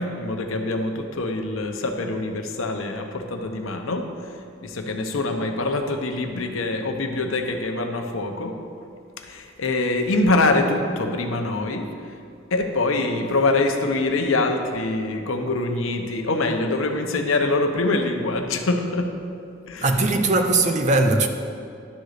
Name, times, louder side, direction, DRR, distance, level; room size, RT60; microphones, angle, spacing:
voice 1, 0.0-4.1 4.6-8.6 9.3-11.9 12.5-19.1 19.7-19.9, left 2 dB, 85° left, 0.8 m, -24 dB
voice 2, 19.8-21.3, right 2 dB, 35° right, 0.6 m, -19 dB
11.5 x 4.0 x 6.5 m
head